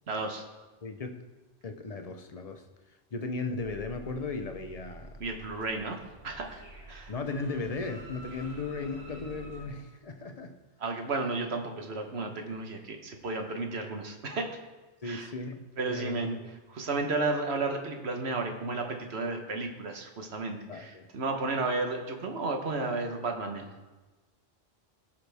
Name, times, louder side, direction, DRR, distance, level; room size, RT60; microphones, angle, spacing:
voice 1, 0.1-0.4 5.2-6.6 6.9-7.1 10.8-14.6 15.0-15.3 15.8-16.4 16.7-23.7, right 3 dB, 75° right, 4 dB, 1.4 m, -33 dB
voice 2, 0.8-1.2 1.6-2.6 3.1-5.2 7.1-10.5 15.0-16.5 20.7-21.1, left 3 dB, 40° left, 6 dB, 0.8 m, -36 dB
sound 1, 3.6-9.7, right 1 dB, 55° right, 2.1 m, -48 dB
16.5 x 5.9 x 3.5 m, 1.2 s
omnidirectional pair, 1.1 m